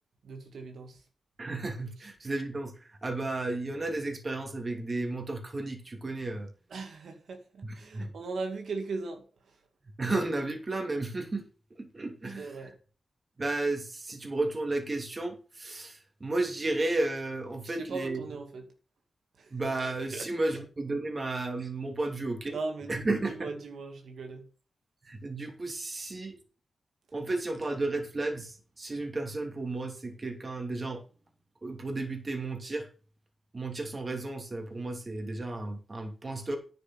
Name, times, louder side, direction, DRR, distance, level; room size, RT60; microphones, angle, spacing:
voice 1, 0.2-1.0 6.7-9.2 12.4-12.7 17.8-18.6 19.4-19.5 20.1-20.6 22.5-23.0 23.3-24.5, right 3 dB, 80° right, 2.2 m, -38 dB
voice 2, 1.4-6.5 7.6-8.1 10.0-11.5 11.8-12.7 13.4-18.2 19.5-22.6 22.9-23.5 25.0-26.4 27.1-31.0 31.6-32.9 33.5-36.6, right 2 dB, 30° right, 2.7 m, -33 dB
9.9 x 6.7 x 6.0 m
wide cardioid pair, 120°, 0 cm